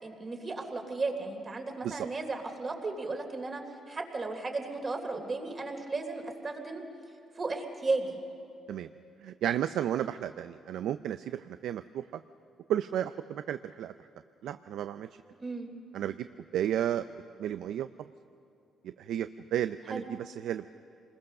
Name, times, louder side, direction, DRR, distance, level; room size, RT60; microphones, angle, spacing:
voice 1, 0.0-3.6 3.9-6.8 7.4-8.2 15.4-15.7 19.9-20.1, right 3 dB, 35° right, 3 dB, 3.2 m, -34 dB
voice 2, 9.2-12.0 12.7-13.9 14.4-15.1 15.9-16.3 16.5-17.1 17.4-17.9 18.8-20.7, right 10 dB, 80° right, 11 dB, 0.5 m, -32 dB
27.5 x 21.0 x 6.6 m, 2.6 s
cardioid pair, 90°, 0 cm